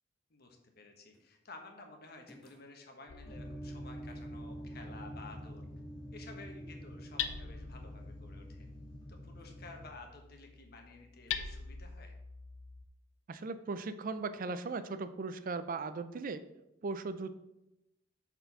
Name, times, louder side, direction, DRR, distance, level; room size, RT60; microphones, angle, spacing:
voice 1, 0.3-5.6 6.1-8.6 9.1-12.1, left 3 dB, 55° left, 3 dB, 1.3 m, -53 dB
sound 1, 1.1-1.4 2.3-2.8 4.1-4.3 9.4-9.7 11.3-11.6, left 1 dB, 5° left, 1.2 m, -62 dB
Hammer, 3.1-12.9, left 7 dB, 75° left, 0.6 m, -45 dB
sound 2, 3.2-9.9, equal, 25° left, 1.6 m, -47 dB
voice 2, 13.3-16.4 16.8-17.3, right 4 dB, 45° right, 11 dB, 0.4 m, -38 dB
6.7 x 4.5 x 5.5 m, 0.90 s
head